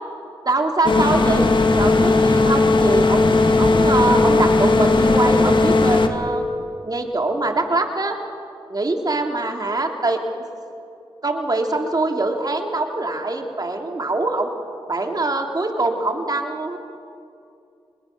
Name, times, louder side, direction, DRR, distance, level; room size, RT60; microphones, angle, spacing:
voice 1, 0.4-6.5 6.9-8.2 8.7-10.4 11.2-14.5 14.9-16.8, right 2 dB, 40° right, 3 dB, 3.0 m, -23 dB
sound 1, 0.8-6.1, left 3 dB, 55° left, 1.9 m, -16 dB
24.5 x 21.0 x 6.1 m, 2.5 s
cardioid pair, 45°, 10 cm